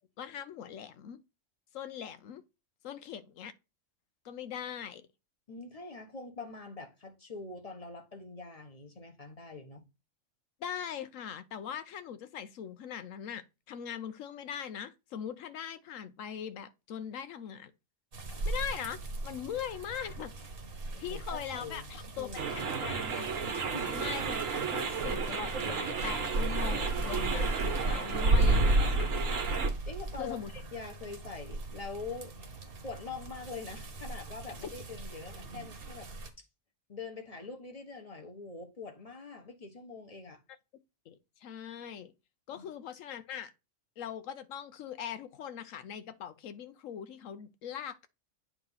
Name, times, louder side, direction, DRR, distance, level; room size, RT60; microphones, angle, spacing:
voice 1, 0.2-1.2 1.7-2.4 2.8-3.5 4.2-5.1 10.6-17.7 18.4-19.0 19.2-20.3 21.0-23.3 23.9-29.1 30.2-30.5 34.6-34.7 41.1-42.1 42.5-43.5 44.0-48.1, left 8 dB, 85° left, 1.1 m, -41 dB
voice 2, 5.5-9.8 18.3-18.5 20.9-21.9 22.2-22.6 23.7-24.0 29.9-32.3 32.8-36.1 36.4-36.5 36.9-40.4 42.5-42.7, left 4 dB, 30° left, 1.3 m, -44 dB
sound 1, 18.1-36.3, right 2 dB, 50° right, 1.2 m, -34 dB
sound 2, 22.4-29.7, right 5 dB, 85° right, 1.6 m, -34 dB
8.8 x 3.0 x 5.6 m
omnidirectional pair, 1.3 m